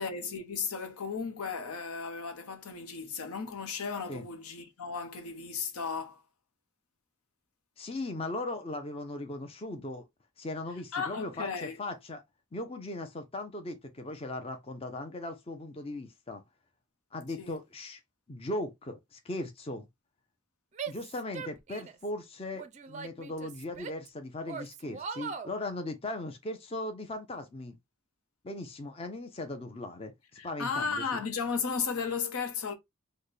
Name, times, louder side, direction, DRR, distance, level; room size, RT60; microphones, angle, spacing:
voice 1, 0.0-6.2 10.9-11.8 17.4-17.5 30.4-32.7, left 5 dB, 85° left, 0.8 m, -35 dB
voice 2, 7.8-10.0 10.4-12.2 12.5-16.4 17.1-18.0 18.3-19.9 20.9-27.8 28.4-30.1 30.4-31.2, left 2 dB, 25° left, 0.5 m, -38 dB
Female speech woman speaking / Yell, 20.7-22.1 22.5-24.1 24.5-25.5, right 6 dB, 30° right, 0.4 m, -40 dB
4.1 x 2.1 x 3.3 m
head